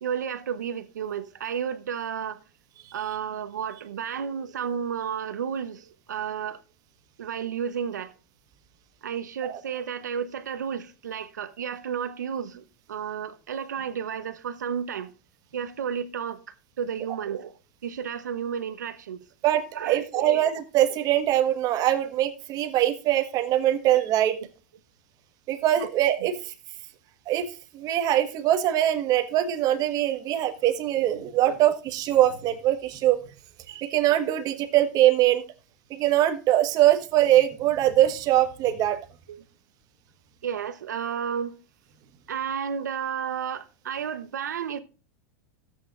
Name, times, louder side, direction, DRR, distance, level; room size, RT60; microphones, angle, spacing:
voice 1, 0.0-2.4 2.9-6.6 7.2-8.1 9.0-15.1 15.5-17.5 17.8-19.3 19.7-20.4 24.3-24.5 25.8-25.9 31.4-31.6 39.3-39.4 40.4-41.6 42.3-44.8, right 7 dB, 90° right, 1.0 m, -32 dB
voice 2, 19.4-24.4 25.5-26.3 27.3-27.5 27.7-33.2 33.7-35.4 35.9-39.0, right 13 dB, 45° right, 1.4 m, -22 dB
13.5 x 8.3 x 2.5 m
hypercardioid pair, 115°, 9 cm